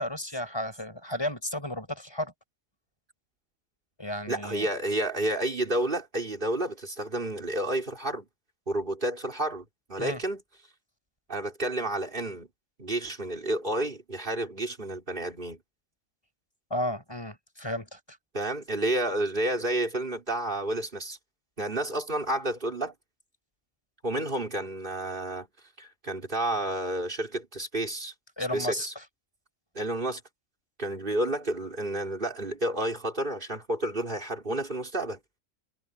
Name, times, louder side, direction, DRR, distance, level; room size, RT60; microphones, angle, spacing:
voice 1, 0.0-2.3 4.0-4.7 10.0-10.2 16.7-18.2 28.4-29.0, left 1 dB, 20° left, 4.9 m, -33 dB
voice 2, 4.3-8.3 8.7-10.4 11.3-12.5 12.8-15.6 18.3-21.2 21.6-22.9 24.0-25.5 25.8-28.1 28.5-28.9 29.7-30.2 30.8-35.2, right 1 dB, 40° right, 4.3 m, -30 dB
omnidirectional pair, 1.4 m